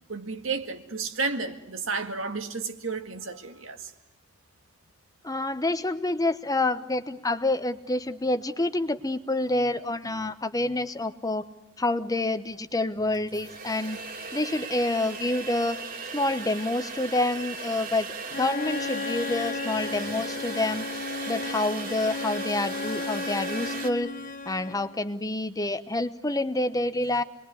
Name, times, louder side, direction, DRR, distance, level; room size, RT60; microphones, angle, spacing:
voice 1, 0.1-3.9, right 4 dB, 70° right, 2.0 m, -32 dB
voice 2, 5.2-11.4 11.8-14.0 14.3-15.8 16.1-18.1 18.4-20.9 21.3-24.1 24.5-27.2, left 2 dB, 20° left, 1.0 m, -27 dB
sound 1, 12.6-12.7 13.1-23.9, right 4 dB, 50° right, 2.9 m, -37 dB
Bowed string instrument, 18.3-25.0, left 4 dB, 45° left, 1.1 m, -35 dB
27.5 x 21.5 x 9.6 m
head